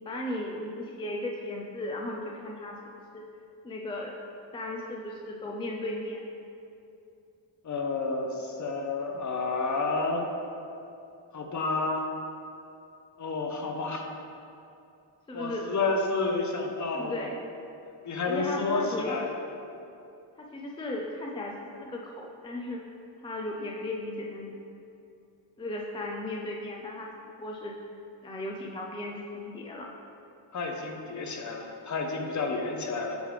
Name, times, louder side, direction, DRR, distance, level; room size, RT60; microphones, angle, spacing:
voice 1, 0.1-2.8 3.1-3.2 3.6-4.1 4.5-6.2 15.3-15.7 16.9-17.4 18.2-19.5 20.4-22.8 23.2-24.6 25.6-27.8 28.2-29.9 32.6-32.7, left 1 dB, 10° left, -1 dB, 0.3 m, -36 dB
voice 2, 7.6-10.3 11.3-12.1 13.2-14.1 15.3-17.3 18.0-19.3 30.5-33.2, left 3 dB, 40° left, 2 dB, 0.8 m, -30 dB
9.1 x 3.3 x 3.3 m, 2.7 s
cardioid pair, 90°, 47 cm